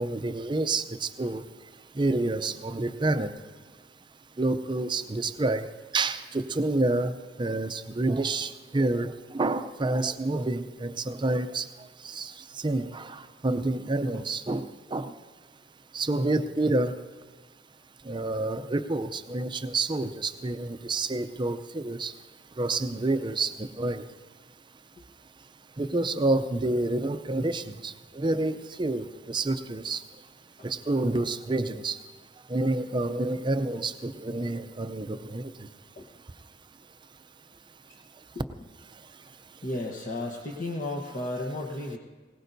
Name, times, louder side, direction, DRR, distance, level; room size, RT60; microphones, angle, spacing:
voice 1, 0.0-1.4 2.0-3.3 4.4-5.7 5.9-11.7 12.0-12.3 12.6-15.1 15.9-16.9 18.1-22.1 22.6-24.0 25.8-30.0 30.6-32.0 32.5-35.5, right 2 dB, 25° right, 10 dB, 0.5 m, -28 dB
voice 2, 39.6-42.0, left 2 dB, 45° left, -1 dB, 1.1 m, -34 dB
20.5 x 18.5 x 2.7 m, 1.4 s
head